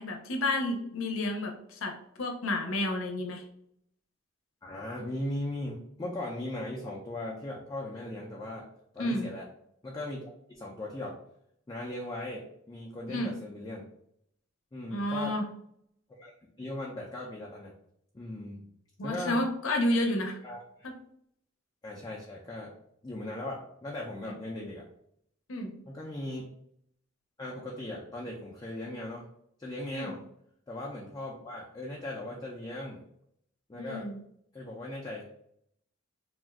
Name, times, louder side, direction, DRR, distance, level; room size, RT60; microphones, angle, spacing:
voice 1, 0.0-3.4 9.0-9.3 13.1-13.3 14.9-15.5 19.0-20.4 25.5-25.7 29.9-30.1 33.7-34.2, left 1 dB, 90° left, 3 dB, 0.6 m, -30 dB
voice 2, 4.6-8.7 8.9-9.5 9.8-11.2 11.7-13.9 14.7-15.3 16.1-16.3 16.6-17.7 18.1-18.7 19.0-19.4 20.4-20.9 21.8-22.7 23.0-24.9 25.9-26.5 27.4-29.3 29.6-30.2 30.7-33.0 33.7-34.1 34.5-35.2, left 1 dB, 20° left, -3 dB, 0.4 m, -38 dB
2.4 x 2.2 x 3.4 m, 0.71 s
head